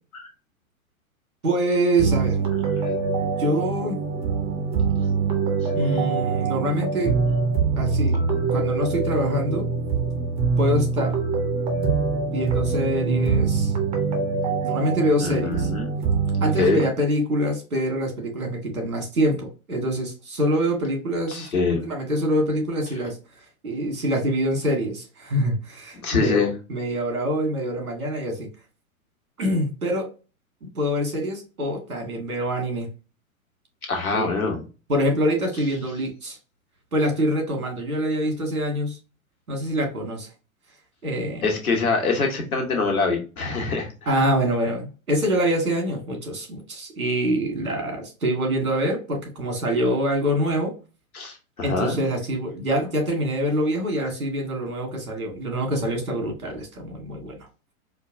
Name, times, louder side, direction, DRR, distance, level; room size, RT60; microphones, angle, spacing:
voice 1, 1.4-2.4 3.4-4.0 5.7-7.1 7.8-8.2 8.5-9.7 10.6-11.1 12.3-13.7 14.6-15.7 16.4-21.5 21.8-23.2 23.6-28.5 29.4-30.1 30.8-32.9 34.1-34.5 34.9-36.4 36.9-39.0 39.5-40.3 41.0-41.5 44.1-50.7 51.6-57.4, equal, 85° right, 2 dB, 1.7 m, -25 dB
sound 1, 2.0-16.9, right 5 dB, 15° right, 0.4 m, -24 dB
voice 2, 15.2-15.9 16.6-16.8 21.3-21.9 26.0-26.5 33.9-34.6 41.4-43.9 51.1-52.0, left 4 dB, 80° left, 2 dB, 1.2 m, -24 dB
4.5 x 2.2 x 2.5 m, 0.32 s
figure-of-eight pair, 105°, 42 cm